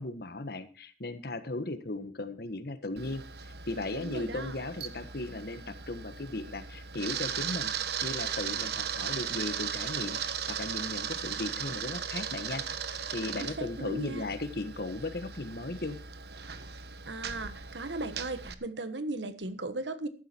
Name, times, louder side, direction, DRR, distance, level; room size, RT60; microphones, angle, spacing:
voice 1, 0.0-3.2 3.7-7.7 8.0-12.6 13.1-16.0, left 2 dB, 60° left, 11 dB, 1.5 m, -36 dB
Camera, 3.0-18.5, right 7 dB, 60° right, 1.3 m, -37 dB
voice 2, 3.9-4.5 13.4-14.3 17.1-20.1, right 2 dB, 90° right, 12 dB, 1.4 m, -37 dB
14.5 x 12.0 x 4.5 m, 0.37 s
head